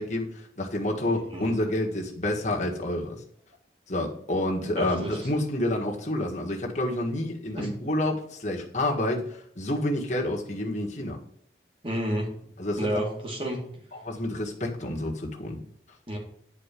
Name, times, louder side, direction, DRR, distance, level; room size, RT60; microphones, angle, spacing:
voice 1, 0.0-3.2 3.9-11.2 12.6-13.1 13.9-15.6, left 1 dB, 40° left, 0 dB, 1.7 m, -29 dB
voice 2, 4.8-5.2 7.6-7.7 11.8-12.3 12.8-13.6 16.1-16.2, equal, 30° right, 0 dB, 2.2 m, -30 dB
10.0 x 4.6 x 7.5 m, 0.66 s
head